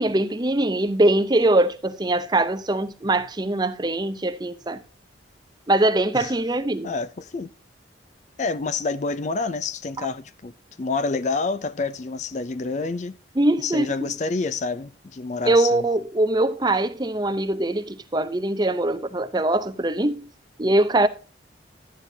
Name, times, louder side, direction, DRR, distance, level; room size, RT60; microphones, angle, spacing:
voice 1, 0.0-4.8 5.7-6.9 10.0-10.1 13.4-13.9 15.4-20.3 20.6-21.1, right 1 dB, 20° right, 0.6 m, -22 dB
voice 2, 6.8-7.5 8.4-10.5 10.8-13.2 13.6-15.9, left 4 dB, 40° left, 0.4 m, -28 dB
13.0 x 9.8 x 2.7 m
head